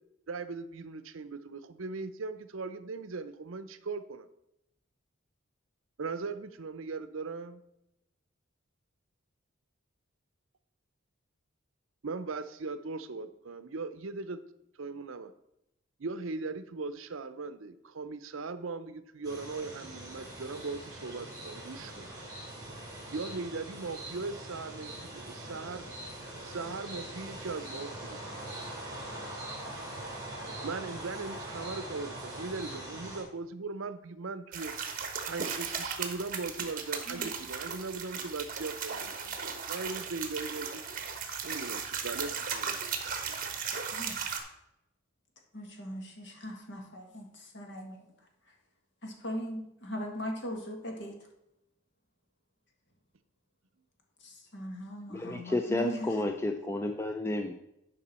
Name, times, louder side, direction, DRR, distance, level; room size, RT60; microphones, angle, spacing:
voice 1, 0.3-4.3 6.0-7.6 12.0-14.4 14.8-15.3 16.0-22.1 23.1-25.9 26.4-28.2 30.6-34.7 35.3-39.4 39.7-40.8 41.4-42.8, right 3 dB, 70° right, 12 dB, 0.6 m, -39 dB
sound 1, 19.2-33.2, right 1 dB, 15° right, 2.6 m, -42 dB
sound 2, 34.5-44.4, right 6 dB, 40° right, 1.1 m, -36 dB
voice 2, 43.9-44.2 45.5-48.0 49.0-51.2 54.2-56.2, equal, 60° left, 2 dB, 1.7 m, -39 dB
voice 3, 55.1-57.5, left 2 dB, 10° left, 5 dB, 0.4 m, -31 dB
11.0 x 5.4 x 4.3 m, 0.84 s
head